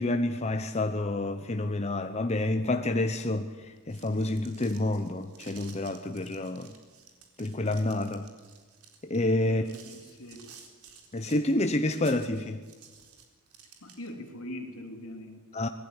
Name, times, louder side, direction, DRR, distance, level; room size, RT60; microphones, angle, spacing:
voice 1, 0.0-6.7 7.4-8.3 9.0-9.6 11.1-12.6 15.5-15.7, left 2 dB, 30° left, 0.9 m, -28 dB
sound 1, 3.8-14.3, right 6 dB, 85° right, 4.1 m, -53 dB
voice 2, 9.4-10.5 13.8-15.7, left 1 dB, 75° left, 3.6 m, -42 dB
25.5 x 19.0 x 9.7 m
head